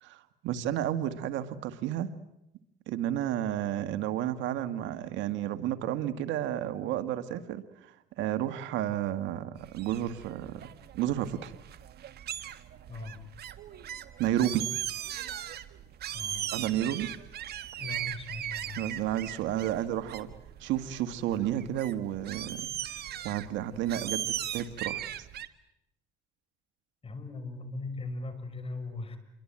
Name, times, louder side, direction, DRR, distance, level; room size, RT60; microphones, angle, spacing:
voice 1, 0.0-2.1 2.9-10.7 10.9-11.5 14.2-14.7 16.5-17.1 18.7-20.3 20.6-22.7 23.2-25.1, right 12 dB, 75° right, 10 dB, 1.9 m, -31 dB
sound 1, 9.6-25.5, right 11 dB, 55° right, 1.7 m, -39 dB
voice 2, 12.9-13.2 16.1-16.4 17.8-18.8 27.0-29.2, left 3 dB, 30° left, 9 dB, 5.8 m, -39 dB
28.0 x 23.0 x 8.9 m, 0.85 s
cardioid pair, 100°, 20 cm